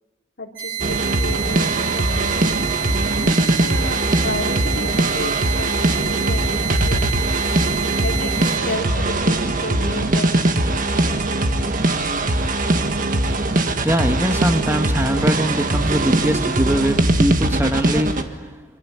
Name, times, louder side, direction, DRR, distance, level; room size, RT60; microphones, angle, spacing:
voice 1, 0.4-2.7 3.2-7.5 8.0-10.9, left 2 dB, 60° left, -1 dB, 3.1 m, -32 dB
sound 1, 0.6-8.6, right 10 dB, 75° right, 7.4 m, -28 dB
sound 2, 0.8-18.2, right 2 dB, 45° right, 1.7 m, -21 dB
voice 2, 13.5-18.5, right 1 dB, 15° right, 7 dB, 1.4 m, -22 dB
26.0 x 25.5 x 8.7 m, 1.2 s
head